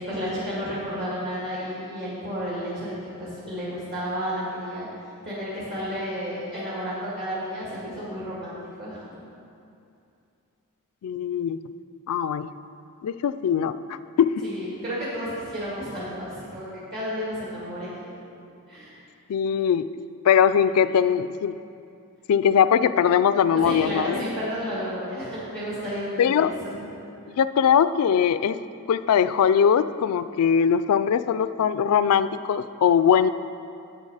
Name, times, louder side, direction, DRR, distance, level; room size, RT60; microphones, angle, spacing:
voice 1, 0.0-4.9 5.2-9.1 14.4-17.9 18.7-18.9 23.6-26.7, equal, 45° right, -9 dB, 2.1 m, -32 dB
voice 2, 11.0-11.6 12.1-12.5 13.0-14.5 19.3-19.9 20.2-21.6 22.3-24.2 26.2-26.5 27.4-28.6 28.9-33.3, left 8 dB, 75° left, 13 dB, 0.3 m, -21 dB
8.4 x 8.0 x 4.8 m, 2.5 s
head